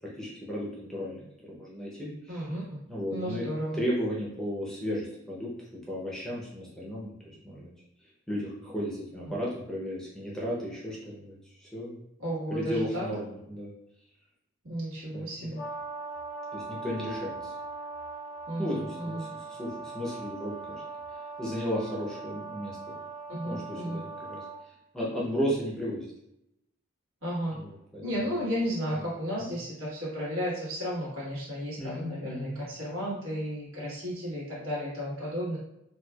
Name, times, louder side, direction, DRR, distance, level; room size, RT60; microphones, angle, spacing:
voice 1, 0.0-2.5 2.9-3.4 3.8-5.5 5.9-7.7 8.3-12.0 12.5-13.7 15.1-15.5 16.5-17.5 18.6-20.8 21.4-22.8 23.4-24.4 24.9-26.1 27.5-28.3 28.9-29.1 29.4-29.5 31.8-32.5, equal, 5° left, -5 dB, 0.6 m, -34 dB
voice 2, 2.3-2.6 3.1-3.8 9.3-9.4 12.2-13.1 14.6-15.6 18.5-19.3 23.3-24.0 27.2-27.6 28.0-35.6, equal, 75° right, -7 dB, 1.5 m, -33 dB
Brass instrument, 15.6-24.6, right 3 dB, 70° left, 0.7 m, -40 dB
4.3 x 2.3 x 2.3 m, 0.82 s
head